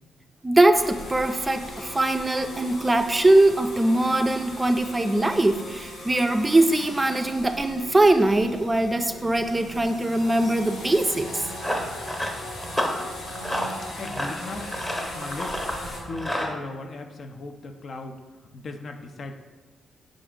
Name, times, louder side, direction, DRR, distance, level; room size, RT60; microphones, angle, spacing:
voice 1, 0.4-11.3, right 1 dB, 20° right, 7 dB, 0.3 m, -21 dB
sound 1, 0.7-16.0, left 1 dB, 85° left, 0.8 m, -39 dB
Run, 11.2-16.5, equal, 15° left, 0.8 m, -31 dB
voice 2, 13.4-14.7 15.1-15.7 16.0-18.2 18.5-19.3, left 3 dB, 60° left, 5 dB, 0.4 m, -37 dB
4.4 x 2.5 x 3.6 m, 1.3 s
supercardioid pair, 50°, 0 cm